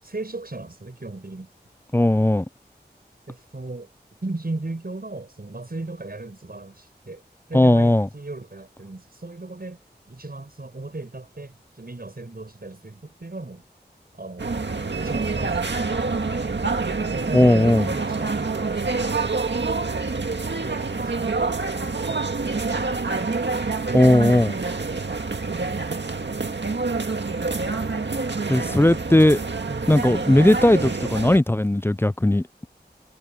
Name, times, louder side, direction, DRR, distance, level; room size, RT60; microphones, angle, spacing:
voice 1, 0.0-1.5 3.3-3.9 4.2-7.2 7.5-9.8 10.1-13.6 14.1-14.5 15.0-19.7 20.1-23.4 23.9-25.8 29.7-30.1, right 2 dB, 60° right, 7.0 m, -37 dB
voice 2, 1.9-2.4 7.5-8.1 17.3-17.9 23.9-24.5 28.5-29.4 29.9-32.7, left 1 dB, 15° left, 0.4 m, -17 dB
sound 1, 14.4-31.4, right 3 dB, 85° right, 1.9 m, -27 dB
wide cardioid pair, 55°, 18 cm